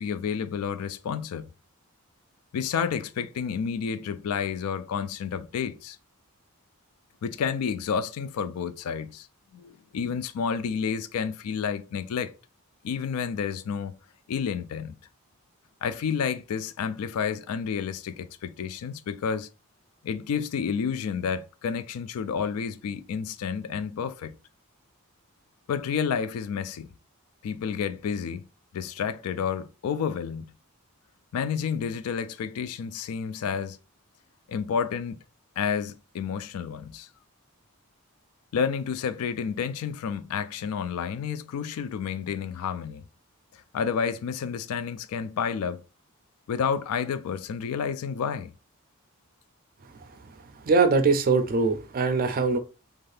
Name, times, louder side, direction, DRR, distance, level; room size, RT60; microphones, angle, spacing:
voice 1, 0.0-1.5 2.5-6.0 7.2-9.3 9.5-12.3 12.8-14.0 14.3-15.0 15.8-19.5 20.0-24.3 25.7-26.9 27.4-28.4 28.7-30.4 31.3-33.8 34.5-35.2 35.6-37.1 38.5-43.0 43.5-45.8 46.5-48.5, left 6 dB, 80° left, 0.3 m, -30 dB
voice 2, 50.7-52.6, right 4 dB, 40° right, 0.4 m, -22 dB
2.6 x 2.4 x 3.2 m
head